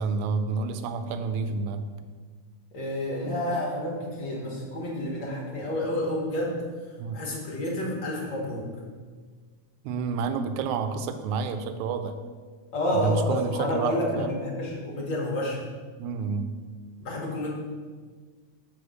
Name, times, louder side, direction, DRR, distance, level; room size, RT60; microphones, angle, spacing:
voice 1, 0.0-1.9 7.0-7.2 9.8-12.1 12.9-14.3 16.0-16.7, right 4 dB, 80° right, 8 dB, 1.9 m, -29 dB
voice 2, 2.7-8.7 12.7-15.6 17.0-17.5, left 1 dB, 50° left, -3 dB, 1.6 m, -29 dB
7.0 x 4.0 x 6.3 m, 1.5 s
omnidirectional pair, 3.4 m